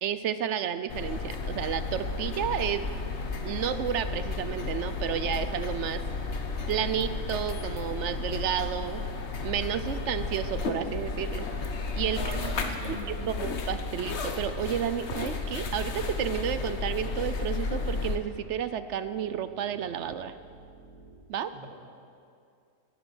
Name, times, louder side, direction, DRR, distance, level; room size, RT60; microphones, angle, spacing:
voice 1, 0.0-2.9 3.4-6.0 6.7-9.0 9.4-11.4 11.9-12.4 12.8-20.4 21.3-21.5, right 9 dB, 65° right, 12 dB, 0.7 m, -31 dB
sound 1, 0.9-18.2, left 4 dB, 50° left, 1.2 m, -33 dB
sound 2, 2.7-21.1, right 2 dB, 45° right, 3.9 m, -51 dB
voice 2, 12.1-13.5 21.5-21.7, right 1 dB, 30° right, -1 dB, 2.2 m, -39 dB
18.0 x 10.0 x 6.1 m, 2.4 s
omnidirectional pair, 1.6 m